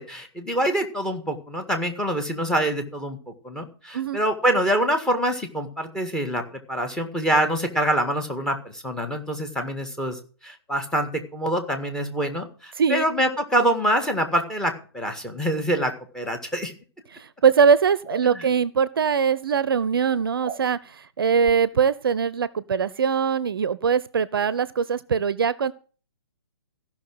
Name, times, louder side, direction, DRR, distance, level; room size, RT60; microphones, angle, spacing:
voice 1, 0.0-3.2 3.4-16.7 18.2-18.4, right 1 dB, 5° left, 6 dB, 1.8 m, -25 dB
voice 2, 17.1-25.7, right 6 dB, 60° right, 19 dB, 0.7 m, -22 dB
sound 1, 18.0-18.3 20.4-20.6 21.4-21.6, right 7 dB, 25° right, 1.5 m, -36 dB
15.0 x 6.0 x 7.6 m, 0.39 s
figure-of-eight pair, 130°, 14 cm